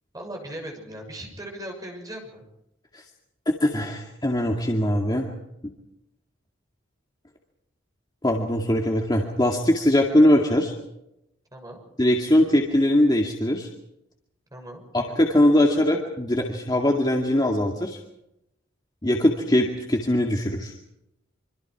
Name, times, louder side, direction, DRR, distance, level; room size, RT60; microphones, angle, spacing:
voice 1, 0.1-2.4 11.5-11.8 14.5-14.8, right 1 dB, 20° right, 2 dB, 6.4 m, -38 dB
voice 2, 3.6-5.3 5.6-5.7 8.2-10.7 12.0-13.7 14.9-18.0 19.0-20.7, left 1 dB, 20° left, 0 dB, 2.2 m, -21 dB
26.0 x 25.5 x 4.8 m, 0.84 s
head